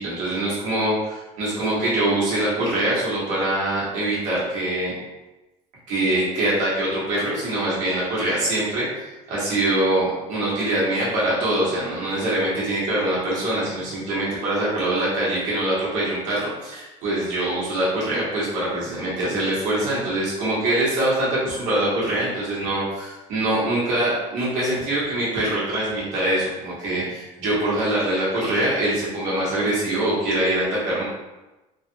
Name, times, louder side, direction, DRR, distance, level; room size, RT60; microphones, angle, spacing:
voice 1, 0.0-4.9 5.9-8.9 9.3-31.0, right 1 dB, 60° right, -7 dB, 1.3 m, -23 dB
3.3 x 2.4 x 2.8 m, 1.1 s
cardioid pair, 175°, 15 cm